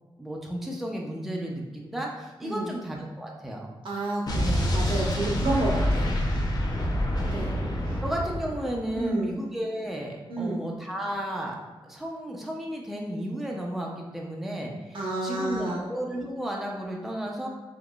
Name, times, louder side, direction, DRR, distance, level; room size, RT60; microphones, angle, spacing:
voice 1, 0.2-3.7 7.4-7.6 8.0-11.6 11.8-17.5, right 1 dB, ahead, -1 dB, 0.4 m, -33 dB
voice 2, 3.8-6.2 7.3-7.5 7.9-8.0 8.9-9.4 10.3-10.6 14.9-15.9, right 2 dB, 75° right, -2 dB, 0.9 m, -30 dB
Explosion, 4.3-9.0, equal, 45° left, 0.6 m, -27 dB
3.8 x 2.8 x 2.3 m, 1.2 s
wide cardioid pair, 140°, 9 cm